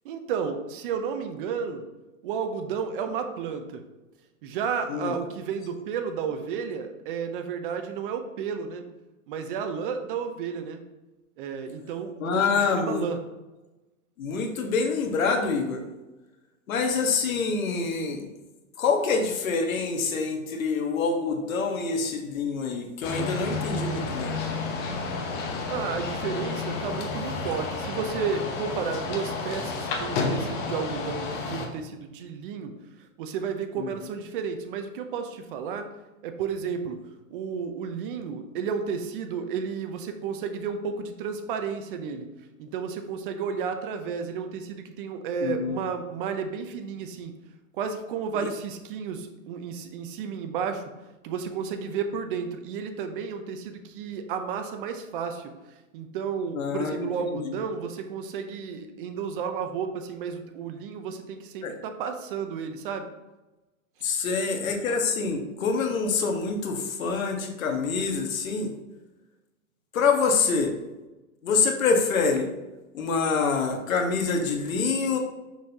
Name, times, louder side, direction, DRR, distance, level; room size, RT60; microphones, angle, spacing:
voice 1, 0.0-1.8 2.2-3.8 4.4-8.8 9.3-10.8 11.4-13.2 25.7-32.7 33.0-35.9 36.2-37.0 37.3-42.3 42.6-47.3 47.7-50.9 51.2-55.5 55.9-63.1 64.0-64.1, right 6 dB, 40° right, 6 dB, 0.8 m, -32 dB
voice 2, 12.2-13.1 14.2-15.8 16.7-18.3 18.8-24.4 33.8-33.9 45.4-45.8 48.3-48.5 56.5-57.6 61.6-61.7 64.0-68.7 69.9-70.7 71.4-72.5 72.9-75.2, left 4 dB, 75° left, 3 dB, 1.5 m, -26 dB
sound 1, 23.0-31.7, left 4 dB, 25° left, 0.8 m, -31 dB
6.5 x 6.2 x 2.9 m, 1.1 s
hypercardioid pair, 145°, 41 cm